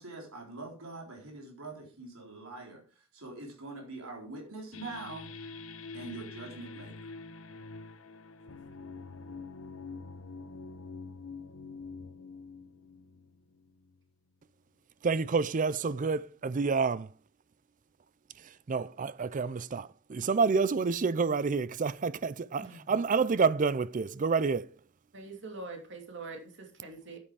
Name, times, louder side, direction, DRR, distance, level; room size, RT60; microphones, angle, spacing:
voice 1, 0.0-5.3 5.9-7.0, right 2 dB, 85° right, 3.9 m, -44 dB
sound 1, 4.7-14.1, left 4 dB, 75° left, 1.0 m, -46 dB
voice 2, 15.0-17.1 18.7-24.7, right 5 dB, 40° right, 0.4 m, -28 dB
voice 3, 22.6-23.1 25.1-27.2, right 3 dB, 60° right, 2.6 m, -44 dB
10.5 x 8.7 x 4.8 m
head